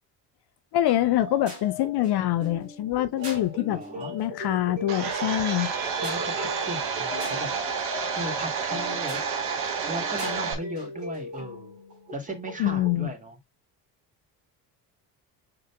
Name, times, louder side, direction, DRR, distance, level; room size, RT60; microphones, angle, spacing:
voice 1, 0.7-3.8 4.1-5.7 12.6-13.1, left 13 dB, 55° left, 0.7 m, -25 dB
sound 1, 0.9-13.0, left 1 dB, 90° right, 3.2 m, -39 dB
voice 2, 3.7-4.1 6.0-7.5 8.1-9.2 9.9-11.7 12.1-13.4, right 1 dB, 15° right, 1.8 m, -36 dB
Domestic sounds home sounds, 4.9-10.5, right 6 dB, 65° right, 1.2 m, -30 dB
5.5 x 3.8 x 2.2 m
hypercardioid pair, 55°, 47 cm